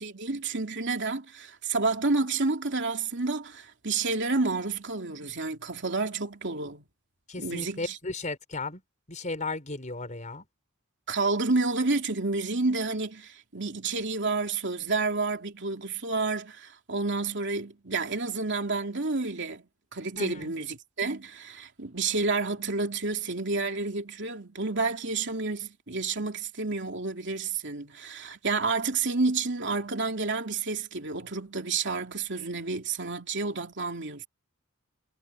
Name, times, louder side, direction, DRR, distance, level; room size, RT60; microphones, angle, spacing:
voice 1, 0.0-6.8 7.4-8.0 11.1-19.6 19.9-34.3, right 3 dB, 60° right, 2.9 m, -30 dB
voice 2, 7.3-8.8 9.1-10.4 20.2-20.5, left 3 dB, 35° left, 4.9 m, -35 dB
head